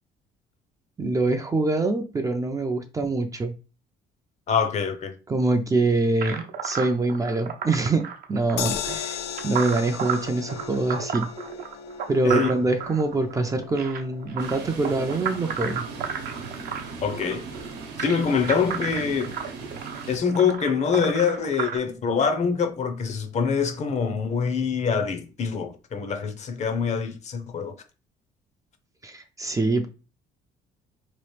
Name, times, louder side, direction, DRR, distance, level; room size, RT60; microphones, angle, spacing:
voice 1, 1.0-3.5 5.3-8.0 8.3-11.3 12.1-15.8 29.0-29.9, right 2 dB, 20° right, 0.4 m, -24 dB
voice 2, 4.5-5.1 12.2-12.5 17.0-17.5 18.0-19.3 20.1-27.7, left 6 dB, 40° left, 0.6 m, -25 dB
sound 1, 6.2-21.8, right 7 dB, 60° right, 0.6 m, -33 dB
sound 2, 8.6-20.8 21.2-21.3 21.6-21.7, left 8 dB, 85° left, 0.4 m, -39 dB
sound 3, 14.4-20.2, right 5 dB, 80° right, 0.9 m, -38 dB
3.0 x 2.4 x 3.2 m
cardioid pair, 110°, 17 cm